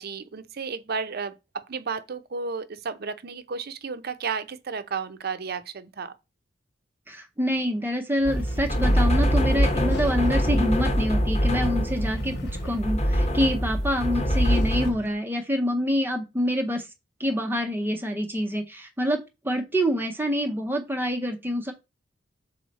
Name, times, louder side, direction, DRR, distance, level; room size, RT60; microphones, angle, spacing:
voice 1, 0.0-6.1, right 5 dB, 55° right, 0.7 m, -33 dB
voice 2, 7.1-12.3 12.6-16.9 17.2-21.7, equal, 10° right, 0.6 m, -26 dB
sound 1, 8.2-15.1, equal, 60° left, 1.0 m, -42 dB
sound 2, 8.2-14.9, equal, 35° left, 1.0 m, -24 dB
6.3 x 4.2 x 4.1 m
head